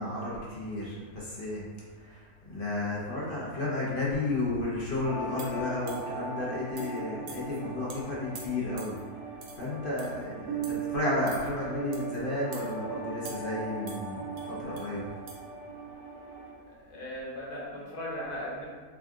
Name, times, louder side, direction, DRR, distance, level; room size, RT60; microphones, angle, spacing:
voice 1, 0.0-1.6 2.0-8.9 9.6-15.0, left 2 dB, 45° left, -7 dB, 0.8 m, -32 dB
sound 1, 5.0-16.5, right 5 dB, 90° right, 1.1 m, -39 dB
sound 2, 5.4-6.2 6.8-7.0 7.3-7.6 7.9-8.0 8.4-9.0 9.4-9.7 10.0-10.2 10.6-10.9 11.3-11.5 11.9-12.2 12.5-12.7 13.3-13.6 13.9-14.9 15.3-15.4, right 4 dB, 65° right, 0.7 m, -47 dB
voice 2, 16.7-18.7, equal, 85° left, -6 dB, 1.5 m, -38 dB
3.5 x 2.4 x 3.6 m, 1.5 s
omnidirectional pair, 1.6 m